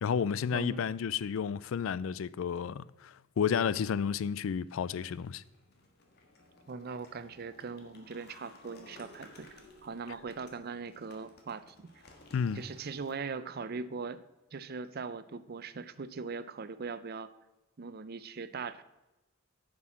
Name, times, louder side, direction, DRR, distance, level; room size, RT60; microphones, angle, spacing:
voice 1, 0.0-5.4 12.3-12.6, left 7 dB, 75° left, 0.4 m, -31 dB
voice 2, 0.5-0.9 6.7-9.5 9.8-11.9 12.5-14.2 14.5-17.3 17.8-18.8, right 4 dB, 50° right, 0.5 m, -40 dB
sound 1, 4.5-13.1, left 2 dB, 50° left, 1.6 m, -57 dB
9.5 x 6.1 x 6.1 m
head